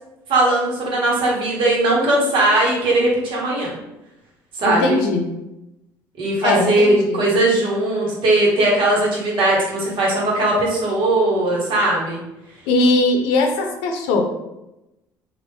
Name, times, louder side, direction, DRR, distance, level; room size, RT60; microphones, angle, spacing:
voice 1, 0.3-3.7 4.6-5.0 6.2-12.2, right 2 dB, 60° right, -3 dB, 1.3 m, -19 dB
voice 2, 4.6-5.3 6.4-7.2 12.7-14.2, left 2 dB, 75° left, 3 dB, 0.6 m, -19 dB
3.1 x 2.5 x 3.1 m, 0.93 s
hypercardioid pair, 65°, 10 cm